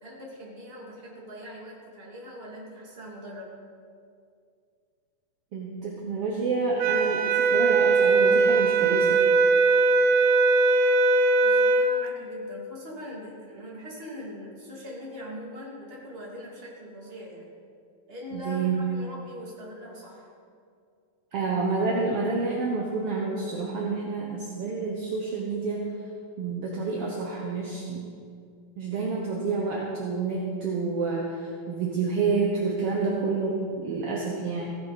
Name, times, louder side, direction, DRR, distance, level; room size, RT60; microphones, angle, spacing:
voice 1, 0.0-3.5 11.4-17.5 18.1-20.3, equal, 20° right, -4 dB, 2.2 m, -41 dB
voice 2, 5.5-9.2 18.3-18.9 21.3-25.8 26.4-28.1 28.8-34.6, right 4 dB, 65° right, -2 dB, 1.5 m, -28 dB
sound 1, 6.8-12.0, right 3 dB, 85° right, 1.7 m, -20 dB
15.5 x 10.5 x 4.1 m, 2.3 s
omnidirectional pair, 4.3 m